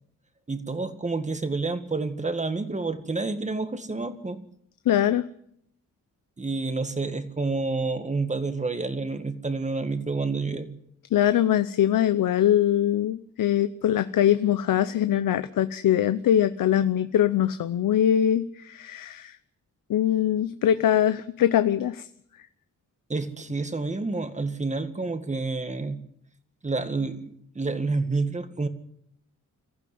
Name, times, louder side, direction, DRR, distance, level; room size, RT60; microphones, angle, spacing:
voice 1, 0.5-4.4 6.4-10.8 23.1-26.0 26.6-28.7, right 3 dB, 20° right, 10 dB, 1.9 m, -29 dB
voice 2, 4.9-5.3 11.1-19.4 19.9-22.1, left 11 dB, 85° left, 12 dB, 0.8 m, -22 dB
22.5 x 14.5 x 9.5 m, 0.70 s
wide cardioid pair, 125°, 32 cm